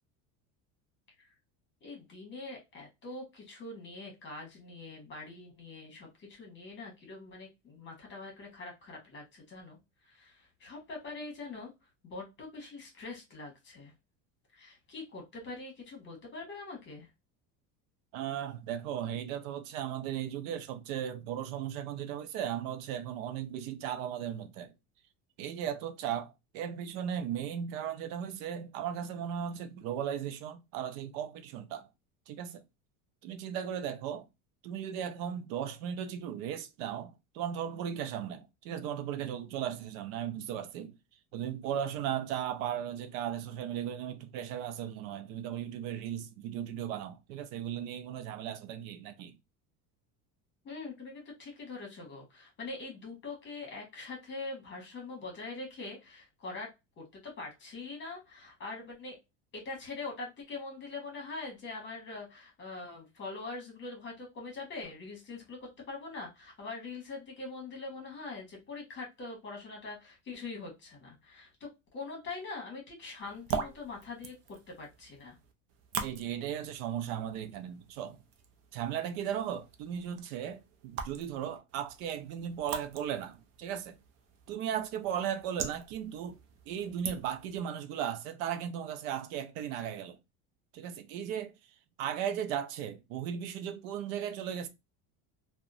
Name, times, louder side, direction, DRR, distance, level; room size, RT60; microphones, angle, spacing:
voice 1, 1.8-9.8 10.1-13.9 14.5-17.1 50.6-56.7 57.0-59.2 59.5-75.4, left 3 dB, 30° left, 1.2 m, -43 dB
voice 2, 18.1-24.7 25.4-31.9 32.3-32.6 33.2-34.3 34.6-40.9 41.3-49.4 76.0-78.2 78.7-84.0 84.5-90.2 90.7-91.5 92.0-94.7, right 9 dB, 90° right, 0.5 m, -36 dB
sound 1, 73.2-87.6, right 6 dB, 40° right, 0.5 m, -43 dB
2.7 x 2.2 x 2.5 m
cardioid pair, 140°, 39 cm